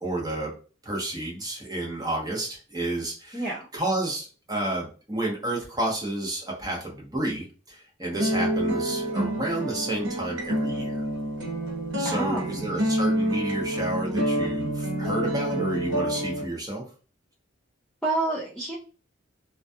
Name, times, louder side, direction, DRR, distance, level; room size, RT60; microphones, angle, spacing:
voice 1, 0.0-0.5 0.8-11.0 12.0-16.8, right 1 dB, 20° right, -2 dB, 0.8 m, -31 dB
voice 2, 3.3-3.7 12.0-12.5 18.0-18.8, right 2 dB, 5° left, -6 dB, 0.3 m, -28 dB
sound 1, 8.1-16.5, right 1 dB, 80° right, 0.9 m, -28 dB
2.3 x 2.2 x 2.6 m, 0.37 s
head